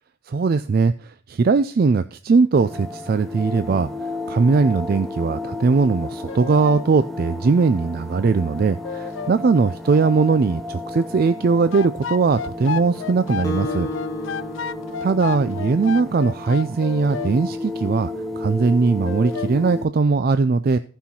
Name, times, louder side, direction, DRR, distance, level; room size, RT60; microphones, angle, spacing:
voice 1, 0.3-13.9 15.0-20.8, right 4 dB, 45° right, 12 dB, 0.3 m, -20 dB
sound 1, 2.5-19.9, left 2 dB, ahead, 0.6 m, -33 dB
sound 2, 6.3-6.8 8.8-9.3 11.7-17.3 19.0-19.5, left 7 dB, 65° left, 0.4 m, -31 dB
Acoustic guitar, 13.4-16.2, left 1 dB, 20° left, 1.3 m, -33 dB
14.0 x 5.6 x 4.2 m, 0.42 s
head